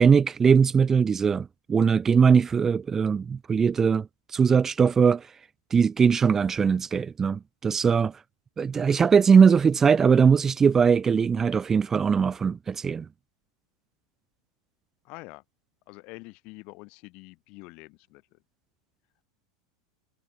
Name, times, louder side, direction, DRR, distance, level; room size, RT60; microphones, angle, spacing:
voice 1, 0.0-5.3 5.7-8.2 8.6-13.1, right 6 dB, 15° right, 0.9 m, -21 dB
voice 2, 15.0-15.4 15.9-18.4, left 26 dB, 45° left, 7.7 m, -46 dB
supercardioid pair, 145°, 2 cm